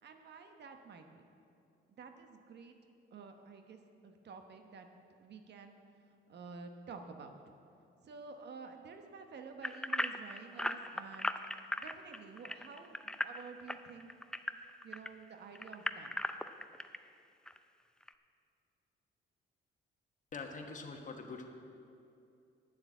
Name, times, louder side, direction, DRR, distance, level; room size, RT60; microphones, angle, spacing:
voice 1, 0.0-1.2 1.9-2.8 3.1-4.9 5.2-5.8 6.3-7.4 8.0-11.3 11.8-14.1 14.8-16.1, right 5 dB, 60° right, 6 dB, 1.0 m, -50 dB
sound 1, 9.6-15.1 15.5-17.0 17.5-17.6 18.1-18.2, left 1 dB, 5° left, 0.4 m, -37 dB
voice 2, 20.3-21.4, left 4 dB, 40° left, 3 dB, 1.4 m, -44 dB
9.6 x 7.0 x 8.2 m, 2.6 s
cardioid pair, 90°, 20 cm